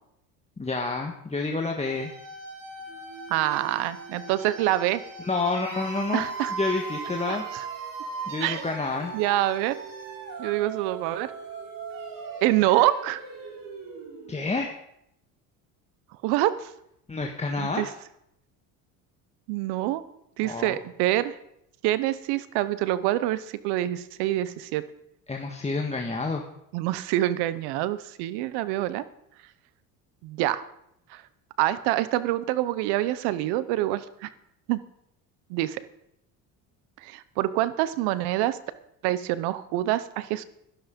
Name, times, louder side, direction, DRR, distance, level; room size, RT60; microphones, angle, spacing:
voice 1, 0.6-2.1 5.2-6.2 6.5-7.5 8.3-9.1 14.3-14.7 17.1-17.9 20.4-20.8 25.3-26.5, left 3 dB, 15° left, 1 dB, 1.5 m, -29 dB
sound 1, 1.8-14.7, right 4 dB, 55° right, 3.5 m, -38 dB
voice 2, 3.3-5.0 6.1-6.5 7.3-7.6 8.4-8.6 9.1-9.7 10.4-11.3 12.4-13.2 16.2-16.7 17.6-17.9 19.5-20.0 20.4-21.4 21.8-24.8 26.7-29.0 30.2-30.6 31.1-31.2 31.6-34.3 34.7-34.8 35.5-35.8 37.0-38.6 39.0-40.4, right 15 dB, 85° right, 16 dB, 0.9 m, -26 dB
12.0 x 11.5 x 5.3 m, 0.76 s
supercardioid pair, 95°, 39 cm